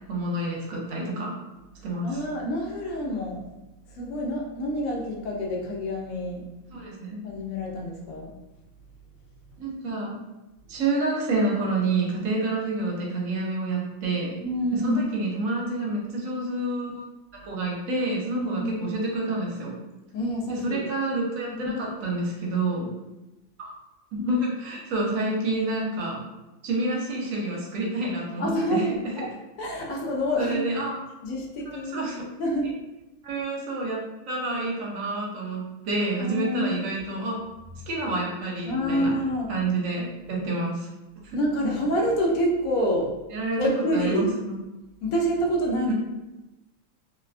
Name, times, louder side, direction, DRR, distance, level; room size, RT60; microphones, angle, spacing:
voice 1, 0.1-1.3 1.8-2.2 6.7-7.3 9.6-10.2 10.7-14.4 14.7-17.0 17.3-19.8 20.5-22.9 23.6-23.7 24.1-26.2 26.6-28.8 30.4-30.9 31.7-32.3 32.6-32.7 33.2-37.4 37.9-39.1 39.5-40.9 41.2-41.4 43.3-44.6 45.9-46.0, right 2 dB, 70° right, -2 dB, 1.0 m, -28 dB
voice 2, 2.0-3.4 3.9-6.4 7.2-8.3 14.4-15.1 18.3-18.8 20.1-20.8 21.5-21.8 28.4-29.3 29.6-30.6 31.2-32.0 32.4-32.7 36.2-36.9 38.7-39.5 41.3-43.1 43.6-44.3 45.0-45.9, equal, 75° left, -1 dB, 1.0 m, -27 dB
2.7 x 2.2 x 2.3 m, 1.0 s
omnidirectional pair, 1.5 m